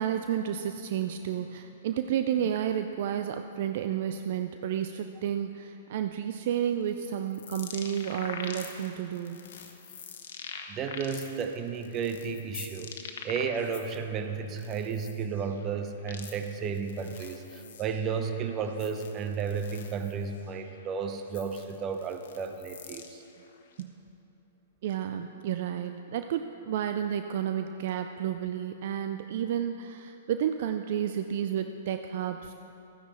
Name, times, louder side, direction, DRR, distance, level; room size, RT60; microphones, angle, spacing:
voice 1, 0.0-9.4 23.8-23.9 24.8-32.6, right 9 dB, 55° right, 8 dB, 0.4 m, -31 dB
sound 1, 6.5-14.0 14.4-23.8, left 6 dB, 65° left, 1.2 m, -45 dB
voice 2, 10.7-13.0 13.2-23.2, right 6 dB, 30° right, 7 dB, 0.9 m, -33 dB
13.5 x 10.0 x 4.4 m, 3.0 s
hypercardioid pair, 115°, 0 cm